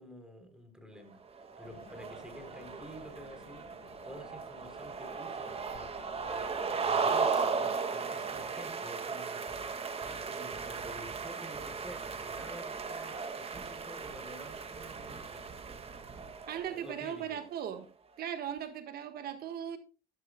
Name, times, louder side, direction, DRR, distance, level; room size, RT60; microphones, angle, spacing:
voice 1, 0.0-5.9 6.3-9.4 10.1-15.5 16.7-17.4, equal, 5° right, 3.8 m, -50 dB
sound 1, 1.3-17.0, right 5 dB, 35° right, 2.1 m, -36 dB
sound 2, 1.6-7.0, left 6 dB, 65° left, 6.4 m, -56 dB
voice 2, 16.5-17.9 18.2-19.8, right 9 dB, 65° right, 1.6 m, -38 dB
14.0 x 14.0 x 2.3 m
cardioid pair, 110°, 17 cm